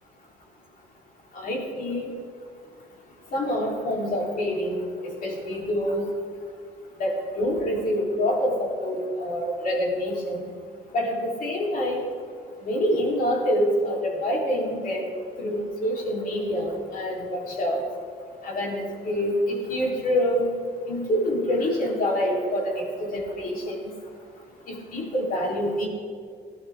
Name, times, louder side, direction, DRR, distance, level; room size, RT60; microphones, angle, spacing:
voice 1, 1.3-2.1 3.3-6.0 7.0-10.4 10.9-12.0 12.6-15.1 15.4-17.8 18.4-20.5 20.9-23.9 24.7-25.9, equal, 55° left, -2 dB, 3.8 m, -26 dB
18.0 x 11.5 x 3.7 m, 2.1 s
cardioid pair, 110°, 17 cm